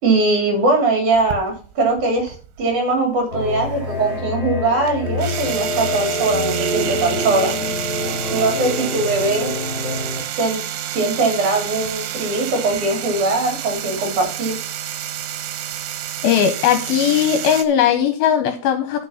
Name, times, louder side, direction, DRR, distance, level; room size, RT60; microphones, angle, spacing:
voice 1, 0.0-7.5 8.3-9.5 10.4-10.6 10.9-14.6, right 3 dB, 50° right, 2 dB, 4.2 m, -21 dB
sound 1, 1.1-2.9 3.2-17.6, right 10 dB, 80° right, 3.1 m, -29 dB
sound 2, 3.3-10.2, left 1 dB, 25° right, 3.3 m, -26 dB
voice 2, 16.2-19.1, left 9 dB, 75° left, 8 dB, 2.4 m, -18 dB
12.0 x 5.5 x 5.6 m, 0.38 s
omnidirectional pair, 4.9 m